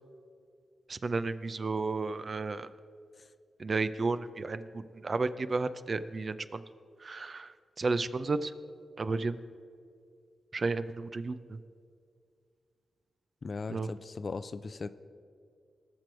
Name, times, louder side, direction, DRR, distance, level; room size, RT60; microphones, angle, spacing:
voice 1, 0.9-2.7 3.6-6.6 7.0-7.5 7.8-8.5 9.0-9.4 10.5-11.6 13.7-13.9, right 3 dB, 50° right, 13 dB, 0.5 m, -32 dB
voice 2, 13.4-14.9, left 4 dB, 55° left, 13 dB, 0.5 m, -38 dB
18.0 x 6.1 x 4.7 m, 2.3 s
supercardioid pair, 40°, 0 cm